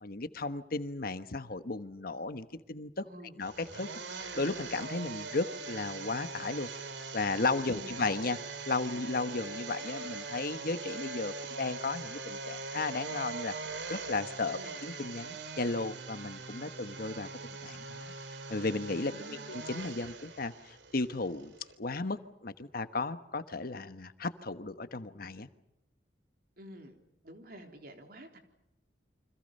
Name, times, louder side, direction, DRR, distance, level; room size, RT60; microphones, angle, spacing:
voice 1, 0.0-3.0 3.4-6.7 7.1-8.4 8.6-17.3 17.6-18.1 18.5-25.5, left 3 dB, 55° left, 10 dB, 1.3 m, -35 dB
voice 2, 3.0-3.4 7.7-8.0 14.5-14.8 19.1-19.4 26.6-27.0 27.2-28.4, equal, 55° right, 4 dB, 3.8 m, -49 dB
sound 1, 3.4-21.7, right 4 dB, 75° right, 2.6 m, -42 dB
29.0 x 25.5 x 5.5 m, 0.86 s
head